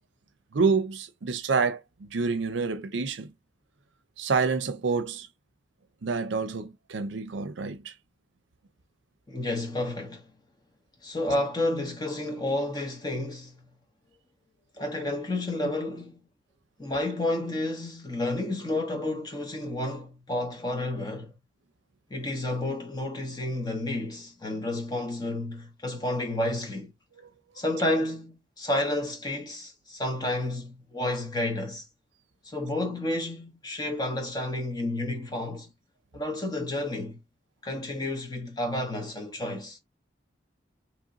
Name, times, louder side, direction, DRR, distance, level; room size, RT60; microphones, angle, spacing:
voice 1, 0.5-3.3 4.2-5.3 6.0-7.9, right 4 dB, 70° right, 0.6 m, -28 dB
voice 2, 9.3-10.3 11.0-13.6 14.8-16.2 16.8-21.3 22.1-26.9 27.6-31.8 32.4-35.7 36.1-37.2 37.6-39.8, left 1 dB, 20° left, 0.9 m, -30 dB
2.9 x 2.7 x 3.8 m
head